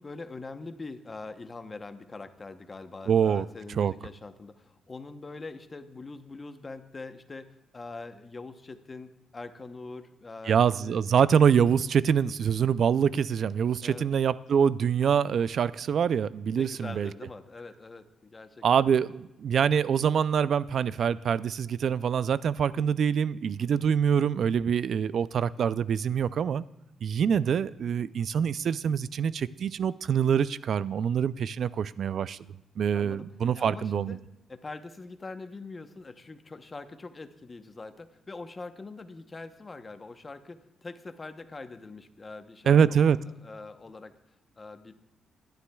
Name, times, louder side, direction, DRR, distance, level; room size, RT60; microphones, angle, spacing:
voice 1, 0.0-11.0 11.5-11.7 13.8-14.1 16.5-18.9 23.6-23.9 32.9-33.3 33.5-44.1 44.6-44.9, left 3 dB, 25° left, 8 dB, 0.8 m, -43 dB
voice 2, 3.1-3.4 3.8-3.9 10.5-17.1 18.6-26.6 27.0-32.4 32.8-34.2 42.7-43.2, right 7 dB, 55° right, 17 dB, 0.3 m, -25 dB
21.0 x 11.5 x 2.3 m, 0.91 s
cardioid pair, 125°, 0 cm